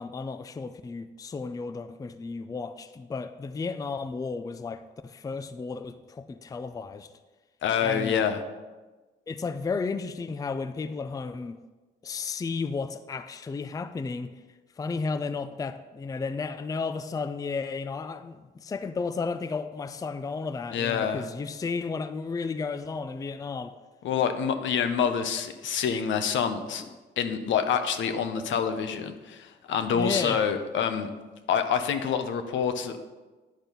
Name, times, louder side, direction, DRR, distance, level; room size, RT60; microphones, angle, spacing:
voice 1, 0.0-7.1 7.8-8.2 9.3-11.6 12.0-14.3 14.8-23.7 26.8-26.9 29.9-30.4, left 4 dB, 20° left, 0.4 m, -33 dB
voice 2, 7.6-8.4 20.7-21.2 24.0-26.8 27.2-31.1 31.5-33.0, left 7 dB, 75° left, 0.8 m, -27 dB
10.0 x 4.4 x 5.2 m
cardioid pair, 90°, 20 cm